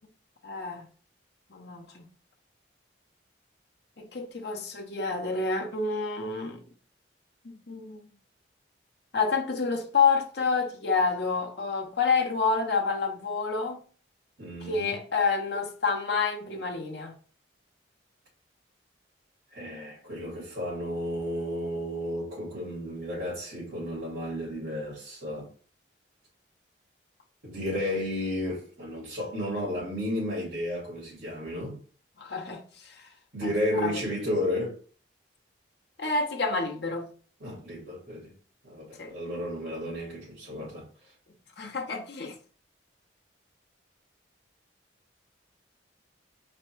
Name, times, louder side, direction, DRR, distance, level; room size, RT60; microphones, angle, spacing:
voice 1, 0.4-0.8 1.5-2.0 4.0-6.6 7.4-8.0 9.1-13.8 14.6-17.1 32.2-32.6 33.4-33.5 33.8-34.0 36.0-37.1 39.0-39.1 41.6-42.3, left 4 dB, 60° left, 0.8 m, -28 dB
voice 2, 14.4-15.0 19.5-25.5 27.4-31.8 33.3-34.8 37.4-38.3 38.6-40.8, left 1 dB, 65° right, 2.2 m, -33 dB
4.2 x 2.2 x 4.4 m
head